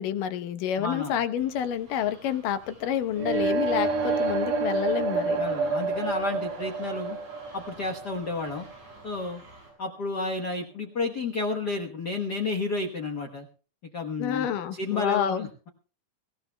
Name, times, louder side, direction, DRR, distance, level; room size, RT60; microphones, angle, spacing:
voice 1, 0.0-5.4 14.2-15.5, left 9 dB, 85° left, 10 dB, 2.6 m, -28 dB
voice 2, 0.8-1.1 5.4-7.2 7.5-8.7 9.0-9.4 9.8-13.5 13.9-15.7, left 3 dB, 65° left, 4 dB, 1.0 m, -31 dB
sound 1, 1.3-9.7, right 1 dB, 50° right, 7.9 m, -51 dB
sound 2, 3.2-9.1, right 4 dB, 75° right, 3.1 m, -28 dB
24.5 x 15.0 x 2.2 m, 0.39 s
omnidirectional pair, 3.7 m